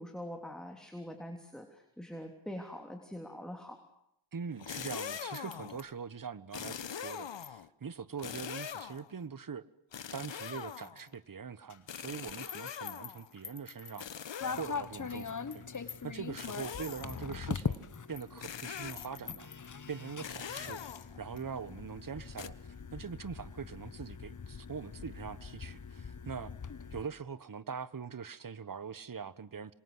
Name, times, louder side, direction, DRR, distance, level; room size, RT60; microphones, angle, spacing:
voice 1, 0.0-3.8, equal, ahead, 3.4 m, -44 dB
voice 2, 4.3-9.7 10.1-14.1 14.5-22.5 22.9-26.5 26.9-29.8, right 6 dB, 40° right, 1.3 m, -43 dB
sound 1, 4.5-5.9 6.5-7.7 8.2-9.1 9.9-11.1 11.9-13.3 14.0-15.1 16.4-17.3 18.4-19.3 20.2-21.4 22.4-22.5, left 8 dB, 65° left, 1.3 m, -42 dB
sound 2, 11.7-14.5 15.0-20.1, left 7 dB, 85° left, 2.4 m, -51 dB
sound 3, 14.4-27.1, left 5 dB, 40° left, 1.4 m, -42 dB
27.0 x 24.5 x 8.0 m
cardioid pair, 70°, 48 cm